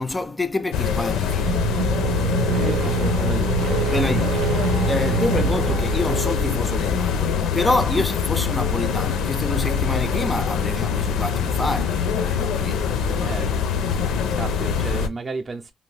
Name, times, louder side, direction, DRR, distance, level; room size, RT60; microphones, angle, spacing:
voice 1, 0.0-1.6 3.9-13.2, left 2 dB, 20° left, 0.4 m, -27 dB
sound 1, 0.7-15.1, left 6 dB, 85° left, 0.6 m, -24 dB
sound 2, 1.4-7.0, right 6 dB, 80° right, 0.7 m, -25 dB
voice 2, 2.6-3.7 5.1-5.2 13.2-13.6 14.3-15.7, right 3 dB, 30° right, 0.5 m, -32 dB
2.7 x 2.5 x 3.2 m
cardioid pair, 90°, 0 cm